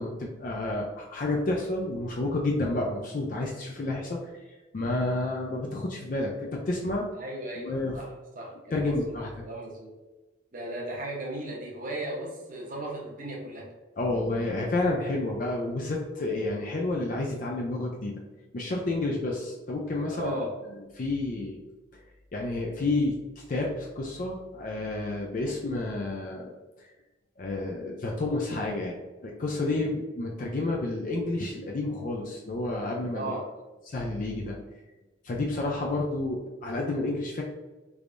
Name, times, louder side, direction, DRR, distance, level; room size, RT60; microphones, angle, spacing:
voice 1, 0.0-4.2 4.7-7.1 7.6-8.0 8.7-9.4 14.0-18.1 18.5-20.5 20.9-21.6 22.3-23.1 23.5-26.5 26.8-26.9 27.4-33.4 33.9-34.6 35.2-37.4, left 2 dB, 45° left, -1 dB, 0.4 m, -30 dB
voice 2, 7.1-8.1 8.4-9.9 10.5-13.7 20.1-20.5 33.1-33.4, right 1 dB, 45° right, -2 dB, 0.8 m, -36 dB
3.4 x 3.3 x 2.5 m, 1.1 s
head